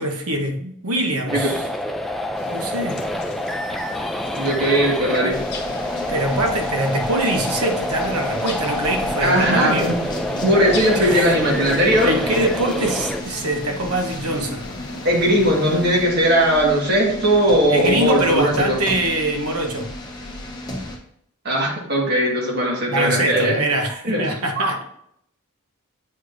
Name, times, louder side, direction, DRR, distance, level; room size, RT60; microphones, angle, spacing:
voice 1, 0.0-1.7 2.5-3.0 5.2-5.3 6.1-9.9 10.9-11.3 11.7-14.7 17.7-19.9 22.9-24.8, right 1 dB, 85° right, 3 dB, 1.0 m, -23 dB
sound 1, 1.3-13.2, left 1 dB, ahead, 0.3 m, -27 dB
sound 2, 2.3-16.0, left 2 dB, 50° left, 1.1 m, -37 dB
voice 2, 4.4-5.4 9.2-10.0 10.3-12.1 15.0-18.8 21.4-23.6 24.0-24.7, equal, 45° right, -1 dB, 1.6 m, -19 dB
sound 3, 5.3-21.0, left 1 dB, 20° left, 0.9 m, -34 dB
7.7 x 4.9 x 2.6 m, 0.70 s
head